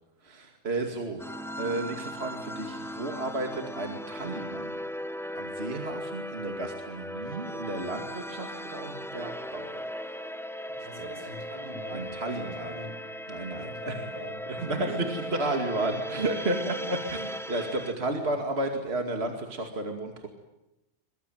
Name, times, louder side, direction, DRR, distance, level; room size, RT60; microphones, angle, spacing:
voice 1, 0.2-1.2 1.6-4.8 5.3-9.8 10.8-11.1 11.9-12.7 13.3-14.0 14.6-20.3, right 2 dB, 40° right, 4 dB, 2.6 m, -33 dB
sound 1, 1.2-17.9, equal, ahead, 0.6 m, -37 dB
voice 2, 10.8-13.0 13.5-15.3 17.1-17.6 18.2-18.4, equal, 65° right, 5 dB, 5.9 m, -43 dB
23.5 x 22.5 x 9.2 m, 0.95 s
omnidirectional pair, 1.6 m